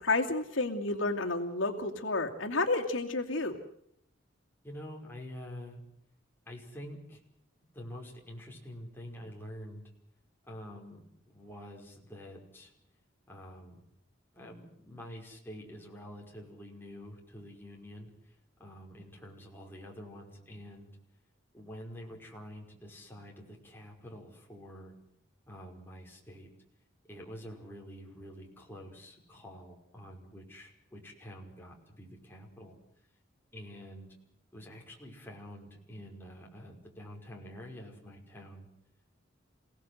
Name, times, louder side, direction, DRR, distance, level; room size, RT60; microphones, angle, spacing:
voice 1, 0.0-3.5, left 2 dB, 75° left, 2 dB, 2.6 m, -30 dB
voice 2, 4.6-5.8 6.5-7.2 7.7-9.8 10.4-12.7 13.3-13.8 14.3-20.9 21.5-24.9 25.5-26.5 27.1-32.8 33.5-34.1 34.5-38.7, equal, 10° left, -1 dB, 5.3 m, -47 dB
28.5 x 17.5 x 8.0 m, 0.73 s
head